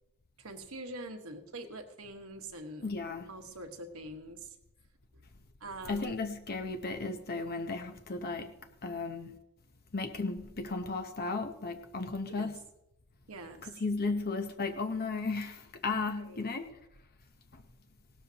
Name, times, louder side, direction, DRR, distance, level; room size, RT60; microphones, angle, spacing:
voice 1, 0.4-2.9 3.3-4.5 5.1-5.2 5.6-6.2 12.2-12.6 13.3-13.8 15.9-16.5, right 2 dB, 70° right, 1.5 m, -45 dB
voice 2, 2.8-3.2 5.9-8.5 8.8-9.3 9.9-12.5 13.6-16.7 17.5-17.6, left 3 dB, 45° left, 0.9 m, -35 dB
18.0 x 12.5 x 2.9 m
head